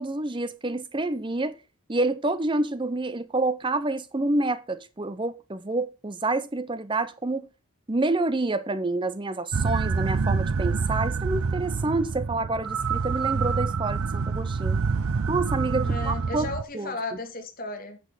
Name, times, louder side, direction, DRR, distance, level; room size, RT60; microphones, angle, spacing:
voice 1, 0.0-1.6 1.9-7.5 7.9-14.8 15.3-16.5 16.7-16.9, right 2 dB, 20° right, 0.6 m, -28 dB
sound 1, 9.5-16.6, right 5 dB, 75° right, 0.5 m, -27 dB
voice 2, 15.8-18.0, left 3 dB, 40° left, 2.1 m, -35 dB
10.0 x 6.3 x 4.9 m
head